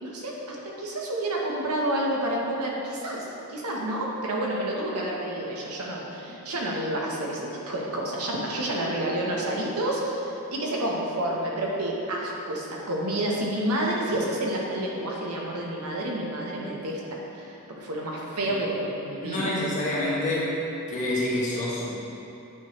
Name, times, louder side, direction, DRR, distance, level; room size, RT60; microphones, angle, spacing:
voice 1, 0.0-19.5, right 1 dB, 80° right, -2 dB, 1.1 m, -29 dB
voice 2, 19.2-20.6 20.9-21.9, left 1 dB, 35° left, -7 dB, 1.3 m, -27 dB
8.9 x 3.2 x 4.9 m, 2.9 s
head